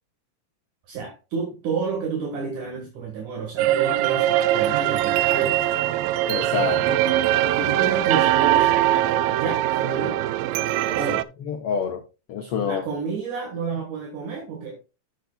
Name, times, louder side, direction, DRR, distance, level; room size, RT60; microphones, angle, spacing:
voice 1, 0.9-5.6 7.5-10.2 10.9-11.3 12.6-14.8, right 5 dB, 65° right, 3.0 m, -30 dB
sound 1, 3.6-11.2, right 13 dB, 85° right, 2.2 m, -21 dB
voice 2, 6.3-7.0 10.9-11.0 11.4-12.0 12.3-12.8, left 6 dB, 75° left, 1.3 m, -27 dB
12.0 x 8.0 x 2.3 m
omnidirectional pair, 3.9 m